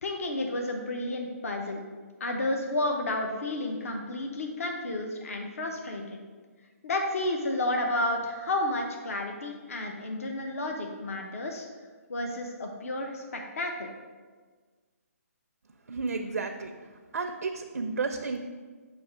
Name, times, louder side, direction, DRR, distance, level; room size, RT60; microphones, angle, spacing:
voice 1, 0.0-1.8 2.2-6.0 6.8-11.7 12.1-13.9, left 1 dB, 60° left, 2 dB, 0.8 m, -31 dB
voice 2, 15.9-16.7 17.1-18.4, right 4 dB, 90° right, 4 dB, 0.5 m, -32 dB
6.2 x 2.9 x 5.6 m, 1.5 s
hypercardioid pair, 170°, 9 cm